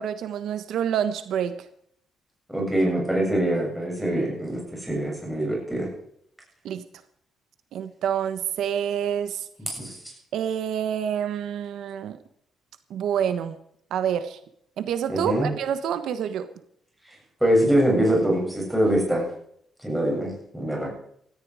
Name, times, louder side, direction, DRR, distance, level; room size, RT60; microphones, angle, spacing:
voice 1, 0.0-1.6 6.6-6.8 7.7-9.5 10.3-12.2 12.9-13.6 13.9-14.4 14.8-16.5, right 9 dB, 75° right, 10 dB, 1.3 m, -27 dB
voice 2, 2.5-5.9 9.7-9.9 15.1-15.5 17.4-19.3 19.8-20.9, right 1 dB, ahead, -2 dB, 7.9 m, -23 dB
18.0 x 14.0 x 4.9 m, 0.69 s
cardioid pair, 155°, 0 cm